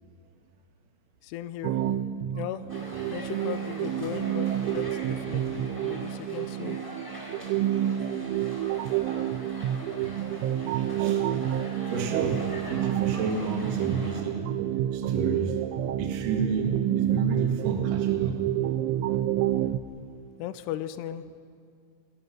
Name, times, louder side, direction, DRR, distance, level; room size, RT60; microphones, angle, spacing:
voice 1, 1.2-1.8 2.3-2.7 3.1-6.8 20.4-21.3, left 12 dB, 85° left, 12 dB, 2.4 m, -37 dB
sound 1, 1.6-19.8, right 11 dB, 85° right, 3.3 m, -28 dB
sound 2, 2.7-14.2, left 1 dB, 5° left, 3.0 m, -42 dB
voice 2, 8.1-8.5 9.3-9.6 11.0-14.5 14.9-15.6 16.0-18.7 19.1-19.2, right 4 dB, 55° right, 2 dB, 3.0 m, -33 dB
28.0 x 22.0 x 6.2 m, 2.2 s
omnidirectional pair, 5.6 m